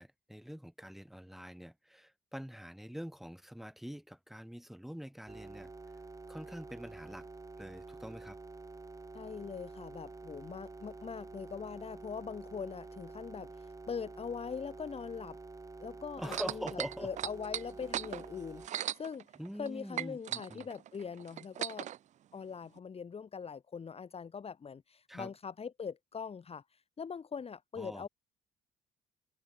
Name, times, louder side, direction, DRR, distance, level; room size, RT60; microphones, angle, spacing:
voice 1, 0.0-5.7 6.3-7.3 7.6-8.4 16.2-17.1 19.4-20.7 25.1-25.3 27.8-28.1, equal, ahead, 7.9 m, -44 dB
sound 1, 5.3-18.7, right 3 dB, 20° right, 1.6 m, -49 dB
voice 2, 9.1-15.4 15.8-16.6 17.0-19.2 19.6-21.9 22.3-28.1, left 6 dB, 35° left, 1.6 m, -42 dB
sound 2, 16.2-19.7 19.9-22.0 22.8-22.9, right 11 dB, 45° right, 0.4 m, -38 dB
open air
supercardioid pair, 75°, 17 cm